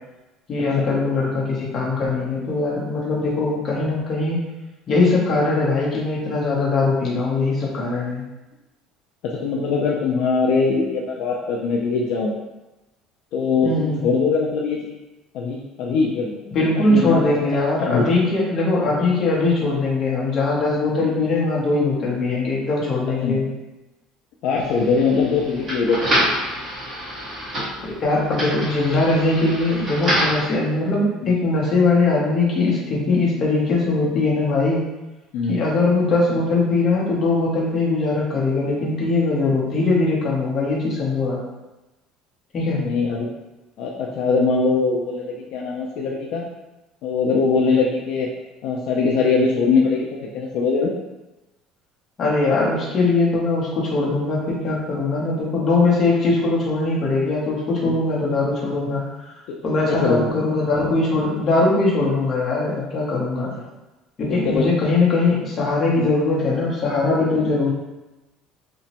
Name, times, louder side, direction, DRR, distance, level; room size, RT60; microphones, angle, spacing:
voice 1, 0.5-4.4 4.9-8.2 13.6-14.0 16.5-23.5 27.8-34.8 35.5-41.4 42.5-42.8 52.2-59.4 59.6-63.5 64.2-67.7, left 3 dB, 30° left, -4 dB, 0.7 m, -21 dB
voice 2, 9.4-12.3 13.3-14.9 15.3-16.5 16.9-17.2 17.5-18.1 21.0-21.1 23.2-23.4 24.4-26.0 31.2-31.3 35.3-35.6 42.8-43.3 43.8-46.5 47.0-48.3 48.6-50.9 57.8-58.0 59.5-59.6 59.9-60.4 64.4-64.7 66.0-66.1 67.3-67.5, left 4 dB, 60° left, -2 dB, 0.3 m, -22 dB
sound 1, 24.6-30.5, equal, 30° right, 1.1 m, -27 dB
2.9 x 2.1 x 2.8 m, 1.1 s
cardioid pair, 160°, 0 cm